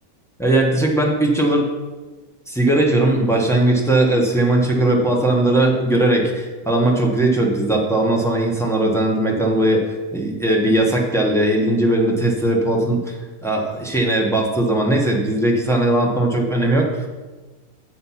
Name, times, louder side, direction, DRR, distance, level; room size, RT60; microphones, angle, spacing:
voice 1, 0.4-1.7 2.5-9.8 10.1-17.0, right 1 dB, ahead, -2 dB, 0.9 m, -18 dB
7.8 x 5.1 x 5.7 m, 1.2 s
omnidirectional pair, 1.8 m